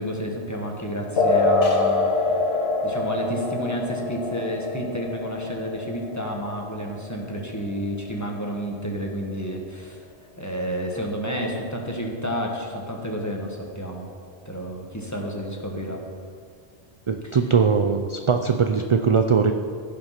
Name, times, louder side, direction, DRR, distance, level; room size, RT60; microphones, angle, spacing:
voice 1, 0.0-2.1 2.8-10.0 10.4-14.1 14.4-16.0 17.2-17.4, equal, 15° left, 0 dB, 1.5 m, -30 dB
sound 1, 1.2-8.2, left 3 dB, 70° left, 1.3 m, -25 dB
voice 2, 17.1-19.5, right 5 dB, 45° right, 6 dB, 0.4 m, -20 dB
15.5 x 6.0 x 5.9 m, 2.1 s
omnidirectional pair, 1.1 m